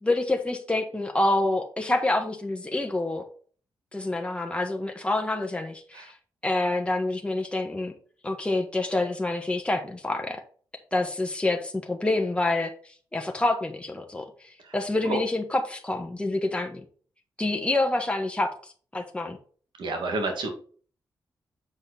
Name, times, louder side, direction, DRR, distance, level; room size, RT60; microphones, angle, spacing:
voice 1, 0.0-3.2 3.9-6.1 6.4-7.9 8.2-10.4 10.9-12.7 13.1-16.8 17.4-19.4, left 2 dB, 15° left, 2 dB, 1.4 m, -27 dB
voice 2, 19.8-20.5, right 2 dB, 70° right, 3 dB, 2.1 m, -28 dB
7.8 x 4.9 x 4.3 m, 0.43 s
cardioid pair, 55°, 8 cm